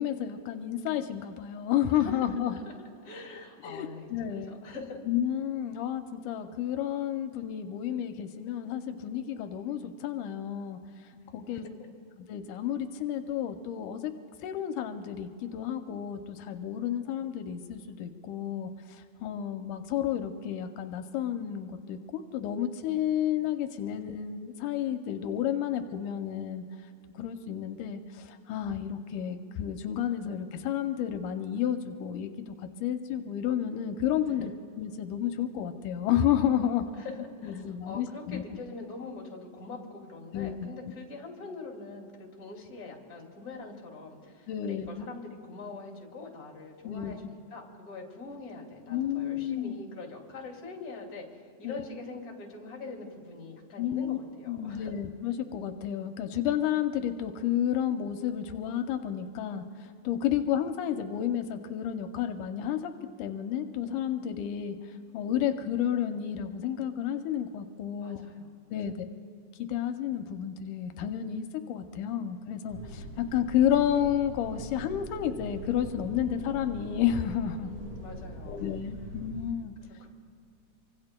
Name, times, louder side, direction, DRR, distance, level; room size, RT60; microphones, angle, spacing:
voice 1, 0.0-2.5 3.6-4.6 5.1-10.8 11.3-11.6 12.3-14.1 14.4-26.6 27.2-34.5 34.8-36.9 37.4-38.4 40.3-40.6 44.5-45.1 46.8-47.2 48.9-49.8 51.6-51.8 53.8-54.2 54.5-59.6 60.0-62.9 63.2-64.8 65.1-68.2 68.7-69.1 69.6-77.7 78.4-79.7, left 10 dB, 85° left, 7 dB, 2.1 m, -31 dB
voice 2, 1.9-2.7 3.0-5.0 11.3-11.9 34.3-34.5 36.6-54.9 60.3-60.4 68.0-68.5 68.9-69.0 77.6-78.8 79.8-80.1, left 3 dB, 30° left, 0 dB, 2.5 m, -44 dB
stairwell wind, 72.7-79.5, equal, 75° right, 3.8 m, -42 dB
26.5 x 24.5 x 2.2 m, 2.5 s
omnidirectional pair, 3.7 m